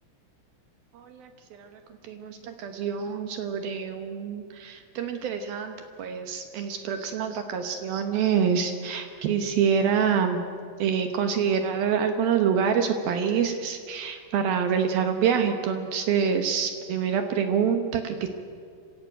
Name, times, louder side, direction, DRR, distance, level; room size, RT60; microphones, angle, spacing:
voice 1, 0.9-10.5 10.8-18.3, right 7 dB, 70° right, 6 dB, 2.3 m, -26 dB
26.0 x 16.5 x 9.0 m, 2.2 s
omnidirectional pair, 5.7 m